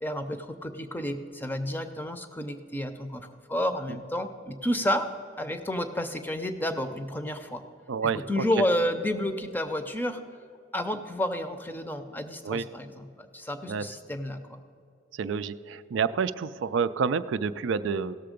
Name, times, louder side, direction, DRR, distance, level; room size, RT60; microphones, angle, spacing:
voice 1, 0.0-5.1 5.4-7.6 8.1-10.2 10.7-14.6, left 1 dB, 10° left, 8 dB, 0.5 m, -30 dB
voice 2, 7.9-8.4 12.4-12.6 13.7-13.8 15.2-18.1, right 6 dB, 80° right, 13 dB, 0.4 m, -28 dB
16.5 x 6.8 x 5.1 m, 2.5 s
head